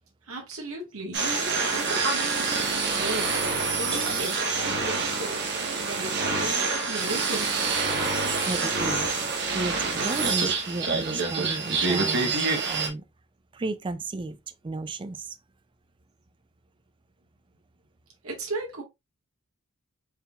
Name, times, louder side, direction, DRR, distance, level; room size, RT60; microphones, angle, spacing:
voice 1, 0.3-7.7 18.2-18.8, right 2 dB, 75° right, 1.4 m, -36 dB
sound 1, 1.1-12.9, right 4 dB, 55° right, 1.0 m, -26 dB
voice 2, 8.5-9.1 9.5-13.0 13.5-14.4 14.6-15.4, right 3 dB, 25° right, 0.4 m, -33 dB
4.5 x 3.6 x 2.3 m
head